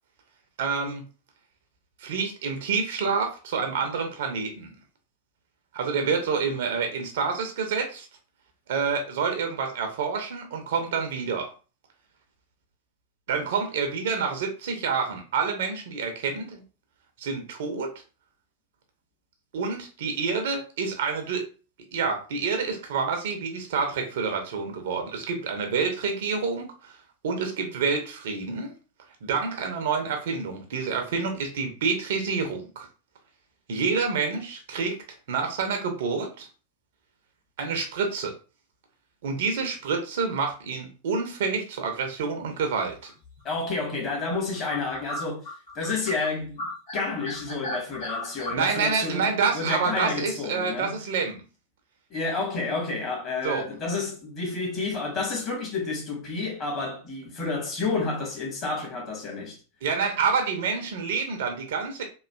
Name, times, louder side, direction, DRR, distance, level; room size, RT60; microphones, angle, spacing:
voice 1, 0.6-1.0 2.0-4.7 5.7-8.1 8.7-11.5 13.3-16.6 17.2-17.9 19.5-21.4 21.9-27.0 27.2-28.7 29.2-32.9 33.7-35.0 35.3-36.5 37.6-38.3 39.2-43.1 48.5-51.4 53.4-53.6 59.8-62.0, right 5 dB, 55° right, 0.6 m, -28 dB
sound 1, 43.0-43.4 43.9-44.0 44.3-46.3 46.6-48.5, left 1 dB, 60° left, 1.5 m, -35 dB
voice 2, 43.4-45.4 45.7-46.6 46.9-51.0 52.1-59.6, left 3 dB, 35° left, 1.3 m, -30 dB
3.1 x 2.4 x 2.3 m
figure-of-eight pair, 90°, 0 cm